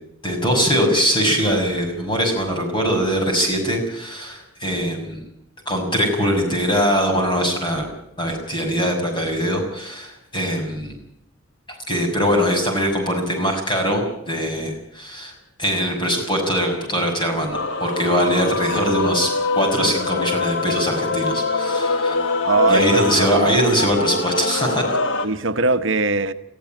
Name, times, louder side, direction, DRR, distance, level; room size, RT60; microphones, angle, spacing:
voice 1, 0.2-5.2 5.7-7.8 8.2-11.0 11.9-15.3 15.6-22.2 22.7-25.3, equal, 20° left, 6.2 m, -22 dB
Male singing / Female singing / Musical instrument, 17.5-25.3, left 3 dB, 65° left, 1.5 m, -23 dB
voice 2, 22.4-23.5 25.2-26.3, right 3 dB, 65° right, 1.0 m, -21 dB
20.0 x 15.0 x 8.9 m
head